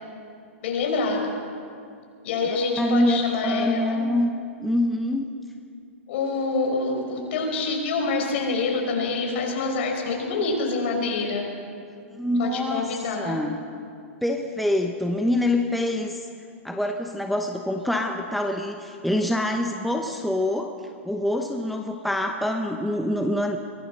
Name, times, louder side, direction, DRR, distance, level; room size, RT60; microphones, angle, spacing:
voice 1, 0.6-1.4 2.2-4.1 6.1-11.5 12.4-13.4, left 3 dB, 55° left, 1 dB, 5.3 m, -26 dB
voice 2, 2.5-4.3 4.6-5.3 12.1-12.9 13.2-13.6 14.2-16.3 16.6-20.7 21.0-23.6, left 1 dB, ahead, 3 dB, 0.9 m, -25 dB
23.5 x 17.5 x 6.6 m, 2.3 s
hypercardioid pair, 150°, 7 cm